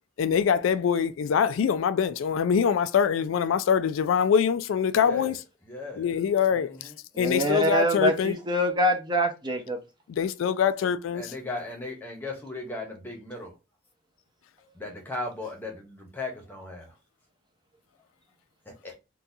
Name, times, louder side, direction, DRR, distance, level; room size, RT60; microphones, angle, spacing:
voice 1, 0.2-5.4 6.0-6.9 7.2-8.4 10.1-11.3, left 7 dB, 90° left, 0.3 m, -24 dB
voice 2, 4.9-5.3 5.6-6.1 6.5-7.0 11.1-13.5 14.7-17.0 18.6-19.0, left 2 dB, 10° left, 0.8 m, -37 dB
voice 3, 7.1-9.8, equal, 20° right, 0.6 m, -25 dB
3.8 x 2.3 x 2.7 m
head